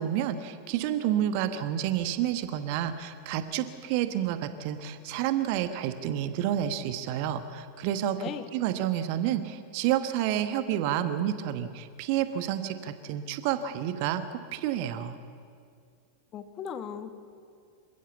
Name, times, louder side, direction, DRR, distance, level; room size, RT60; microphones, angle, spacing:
voice 1, 0.0-15.2, right 11 dB, 45° right, 10 dB, 1.2 m, -29 dB
voice 2, 16.3-17.1, left 8 dB, 30° left, 9 dB, 1.4 m, -37 dB
27.5 x 15.5 x 7.2 m, 2.3 s
figure-of-eight pair, 90°, 0 cm